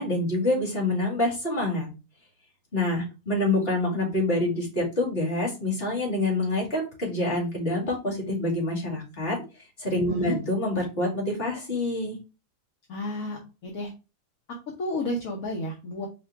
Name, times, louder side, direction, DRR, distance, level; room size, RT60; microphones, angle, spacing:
voice 1, 0.0-1.9 2.7-9.4 9.8-12.2, left 2 dB, 40° left, -3 dB, 2.3 m, -26 dB
voice 2, 12.9-13.9 14.8-16.1, left 1 dB, 65° left, -1 dB, 1.3 m, -31 dB
4.9 x 2.3 x 4.5 m, 0.29 s
omnidirectional pair, 1.6 m